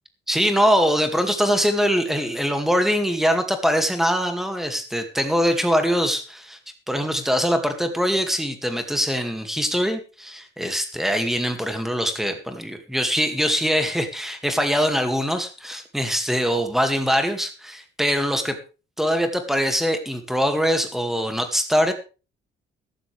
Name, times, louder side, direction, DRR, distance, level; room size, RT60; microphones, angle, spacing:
voice 1, 0.3-6.6 6.9-18.6 19.0-21.9, equal, ahead, 6 dB, 2.3 m, -23 dB
15.0 x 13.0 x 3.4 m, 0.33 s
cardioid pair, 150°, 19 cm